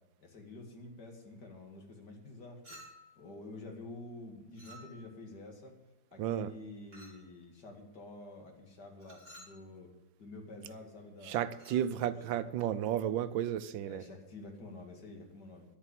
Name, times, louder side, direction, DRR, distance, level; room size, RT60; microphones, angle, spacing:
voice 1, 0.2-2.8 3.2-5.7 6.1-9.9 10.2-11.4 11.9-12.4 13.8-15.6, left 2 dB, 60° left, 2.8 m, -49 dB
Chink clink, 2.6-3.2 4.5-5.2 6.9-7.3 9.0-9.6 11.5-11.9, right 1 dB, 30° right, 3.2 m, -54 dB
voice 2, 6.2-6.5 11.3-14.0, right 10 dB, 85° right, 1.4 m, -33 dB
11.0 x 8.6 x 8.3 m
omnidirectional pair, 2.0 m